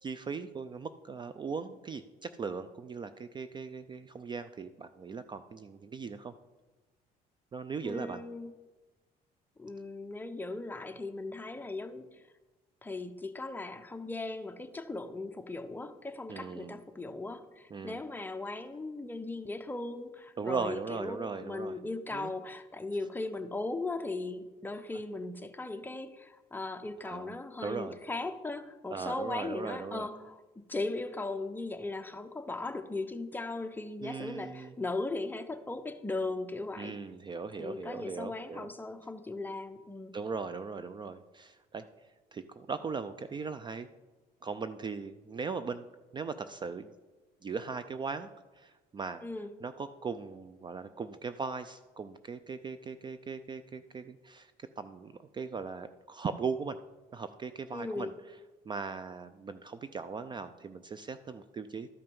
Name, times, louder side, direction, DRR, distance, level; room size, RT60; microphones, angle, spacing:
voice 1, 0.0-6.3 7.5-8.2 16.3-16.8 17.7-18.0 20.4-21.8 22.1-22.3 27.0-27.3 27.6-28.0 28.9-30.1 34.0-34.7 36.8-38.7 40.1-41.8 42.3-43.9 44.4-45.9 46.1-46.9 47.4-48.3 48.5-49.2 49.6-56.8 57.1-58.1 58.7-61.9, right 5 dB, 25° right, 12 dB, 0.4 m, -39 dB
voice 2, 7.8-8.5 9.6-12.3 12.8-37.0 37.6-40.2 49.2-49.5 57.7-58.1, left 2 dB, 10° left, 8 dB, 0.7 m, -38 dB
12.5 x 5.5 x 5.4 m, 1.2 s
cardioid pair, 110°, 17 cm